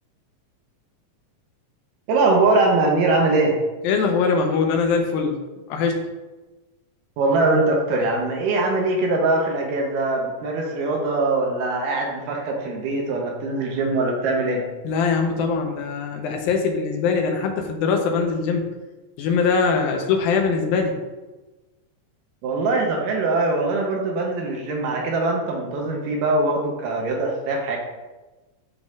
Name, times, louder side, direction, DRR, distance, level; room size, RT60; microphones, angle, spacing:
voice 1, 2.1-3.5 7.2-14.6 22.4-27.8, right 2 dB, 75° right, 0 dB, 2.3 m, -22 dB
voice 2, 3.8-5.4 5.7-6.1 14.8-18.7 19.2-21.0, left 5 dB, 90° left, 3 dB, 2.7 m, -22 dB
11.5 x 3.9 x 2.4 m, 1.2 s
omnidirectional pair, 4.0 m